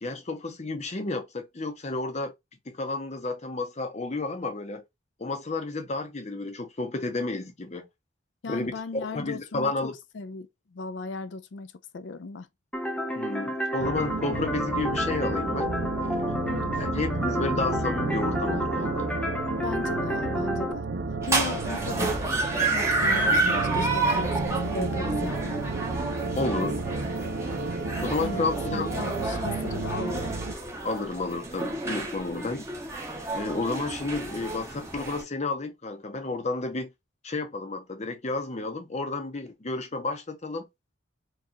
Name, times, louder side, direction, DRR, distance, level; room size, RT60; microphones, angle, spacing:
voice 1, 0.0-2.3 2.7-4.8 5.2-7.9 8.5-9.9 13.1-16.3 16.8-19.2 26.3-26.8 28.0-28.9 29.7-29.8 30.8-32.7 33.3-36.9 37.2-40.7, left 3 dB, 35° left, 0.8 m, -31 dB
voice 2, 8.4-9.7 10.1-12.5 16.5-16.9 19.6-20.8 21.3-25.6 26.5-26.7 28.2-30.4, left 3 dB, 70° left, 0.5 m, -37 dB
sound 1, 12.7-20.7, equal, 5° left, 0.6 m, -31 dB
sound 2, 13.8-30.5, right 3 dB, 70° right, 0.8 m, -32 dB
sound 3, 21.2-35.2, right 2 dB, 15° right, 1.0 m, -30 dB
4.6 x 2.4 x 2.8 m
head